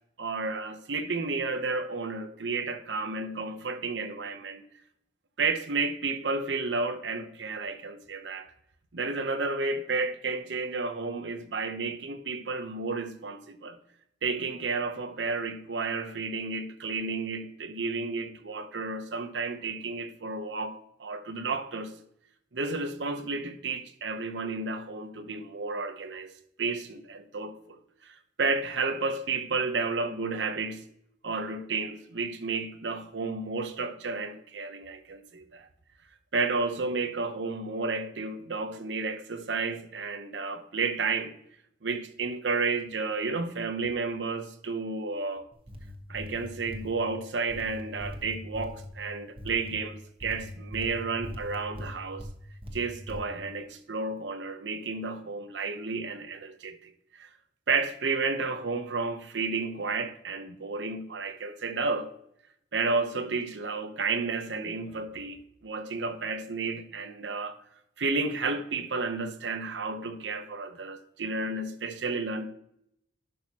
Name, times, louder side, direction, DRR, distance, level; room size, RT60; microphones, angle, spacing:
voice 1, 0.2-4.6 5.4-8.5 8.9-13.8 14.2-21.9 22.5-26.3 26.6-30.9 31.2-35.7 36.3-41.3 41.8-45.5 46.1-52.3 52.7-57.3 57.7-62.1 62.7-67.6 68.0-72.5, right 4 dB, 90° right, 0.8 m, -32 dB
sound 1, 45.5-46.9 47.5-48.9 49.4-49.7 50.2-52.3 52.6-53.2, left 1 dB, 30° right, 1.2 m, -40 dB
11.0 x 6.3 x 2.9 m
head